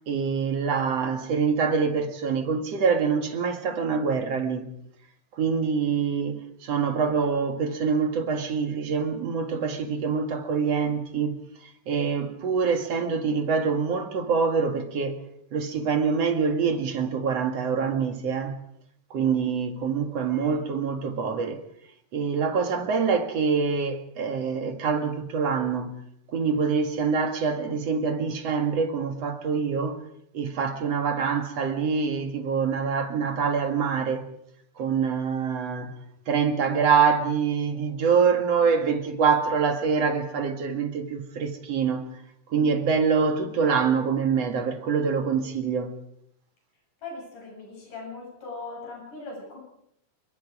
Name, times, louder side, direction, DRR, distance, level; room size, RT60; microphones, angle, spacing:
voice 1, 0.1-4.7 5.3-11.4 11.9-15.2 15.5-18.6 19.1-21.6 22.1-26.0 26.3-30.0 30.3-34.3 34.8-35.9 36.3-42.1 42.5-46.0, right 5 dB, 50° right, 2.7 m, -25 dB
voice 2, 47.0-49.6, left 3 dB, 60° left, 9.2 m, -39 dB
28.5 x 22.5 x 5.0 m
omnidirectional pair, 4.1 m